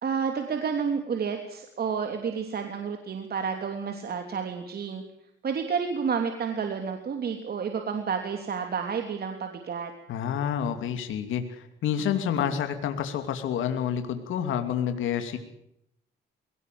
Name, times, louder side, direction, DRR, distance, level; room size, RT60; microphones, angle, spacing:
voice 1, 0.0-5.0 5.4-9.9, right 6 dB, 50° right, 4 dB, 3.2 m, -30 dB
voice 2, 10.1-15.4, left 8 dB, 80° left, 7 dB, 2.7 m, -28 dB
22.0 x 19.0 x 7.7 m, 0.77 s
cardioid pair, 90°, 20 cm